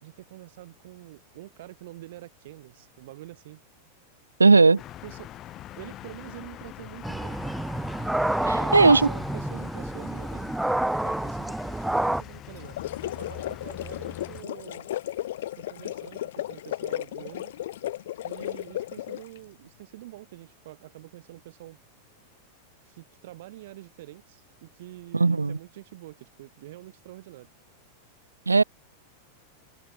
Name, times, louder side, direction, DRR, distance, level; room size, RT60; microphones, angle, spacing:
voice 1, 0.0-3.6 4.5-5.4 5.8-7.6 8.4-10.7 11.0-12.8 13.0-14.9 15.5-17.5 18.2-21.8 22.8-27.5, right 16 dB, 55° right, 3.0 m, -46 dB
voice 2, 4.4-4.8 8.7-9.0 25.1-25.6 28.5-28.6, right 4 dB, 80° right, 0.5 m, -16 dB
sound 1, 4.8-14.4, left 13 dB, 30° left, 4.2 m, -43 dB
sound 2, 7.0-12.2, right 1 dB, 5° right, 0.3 m, -28 dB
sound 3, 12.6-19.4, left 13 dB, 55° left, 4.0 m, -34 dB
figure-of-eight pair, 90°, 0 cm